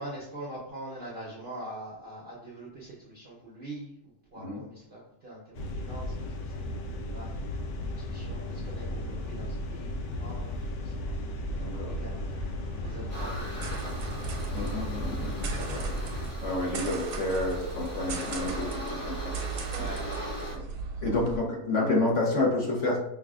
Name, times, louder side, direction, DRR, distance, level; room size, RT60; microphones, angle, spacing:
voice 1, 0.0-7.3 7.9-12.5 12.8-14.2 14.5-14.7 19.7-20.8, right 1 dB, 50° right, -6 dB, 0.6 m, -44 dB
sound 1, 5.5-16.3, left 1 dB, 85° left, 1.2 m, -35 dB
voice 2, 11.6-11.9 14.5-15.8 16.4-19.3 20.5-20.6 21.0-23.0, left 2 dB, 50° left, -3 dB, 1.1 m, -29 dB
sound 2, 12.1-21.4, right 4 dB, 85° right, 1.2 m, -37 dB
sound 3, 13.1-20.5, equal, 65° left, 2.0 m, -40 dB
5.5 x 2.4 x 2.4 m, 0.74 s
omnidirectional pair, 1.8 m